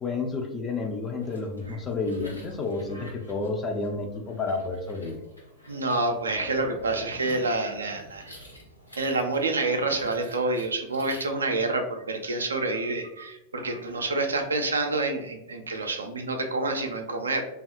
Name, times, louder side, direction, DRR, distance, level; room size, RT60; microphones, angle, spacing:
voice 1, 0.0-5.2, left 3 dB, 20° left, 2 dB, 0.4 m, -30 dB
sound 1, 1.1-11.3, equal, 90° left, 0.6 m, -49 dB
voice 2, 5.7-8.3 9.0-17.4, right 2 dB, 75° right, 4 dB, 0.3 m, -28 dB
2.7 x 2.2 x 2.4 m, 0.91 s
figure-of-eight pair, 90°, 0 cm